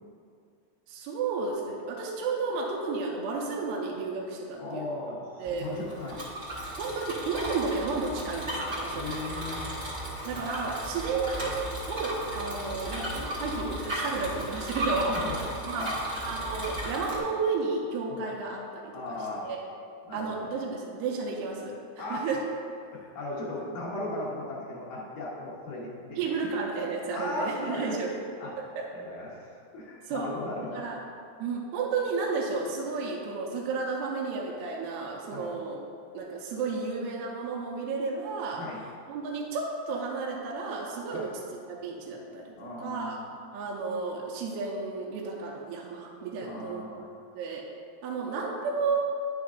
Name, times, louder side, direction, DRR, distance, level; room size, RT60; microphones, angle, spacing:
voice 1, 0.9-5.0 5.4-5.7 6.8-9.2 10.2-11.4 11.9-15.2 15.7-15.9 16.2-19.2 19.4-19.6 20.1-22.4 26.2-28.1 28.6-28.9 30.1-30.3 30.7-31.0 31.4-35.8 36.1-38.6 39.1-41.4 41.7-43.2 43.5-46.9 47.3-47.6 48.0-49.0, right 4 dB, 85° right, -2 dB, 2.6 m, -32 dB
voice 2, 4.6-6.2 8.9-9.7 15.1-15.4 15.7-15.9 18.1-18.2 18.9-19.4 20.1-20.5 22.0-22.2 22.9-26.2 27.1-28.0 28.4-28.5 28.9-30.9 35.3-35.5 38.6-38.8 41.1-41.3 42.6-43.3 46.4-47.1, left 2 dB, 70° left, -6 dB, 2.2 m, -37 dB
Bicycle, 5.4-17.2, equal, 45° right, 1.3 m, -35 dB
10.5 x 6.3 x 2.4 m, 2.4 s
omnidirectional pair, 4.7 m